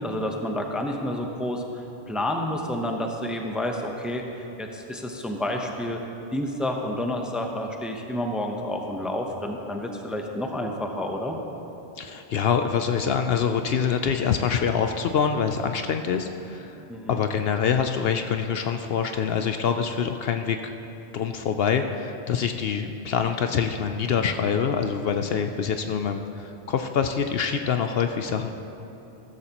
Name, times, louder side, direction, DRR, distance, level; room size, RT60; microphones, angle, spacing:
voice 1, 0.0-1.6 2.1-4.2 4.6-6.0 6.3-11.4 16.9-17.2, left 1 dB, ahead, 2 dB, 0.7 m, -29 dB
voice 2, 12.0-16.8 17.1-20.7 21.1-28.5, left 7 dB, 65° left, 6 dB, 0.7 m, -25 dB
15.0 x 13.5 x 3.0 m, 3.0 s
omnidirectional pair, 1.1 m